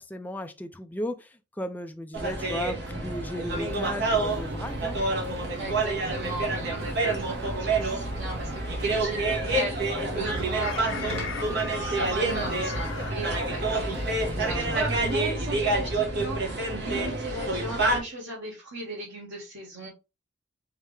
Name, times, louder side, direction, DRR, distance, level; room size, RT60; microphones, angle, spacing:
voice 1, 0.0-5.0 14.3-14.8, left 1 dB, 10° left, 0.4 m, -35 dB
sound 1, 2.1-18.0, right 2 dB, 55° right, 1.2 m, -28 dB
sound 2, 3.5-15.2, equal, 25° right, 1.7 m, -44 dB
voice 2, 5.5-19.9, right 1 dB, 85° right, 1.7 m, -37 dB
Chicken rooster, 10.3-13.1, left 5 dB, 75° left, 0.7 m, -37 dB
4.8 x 3.2 x 3.3 m
head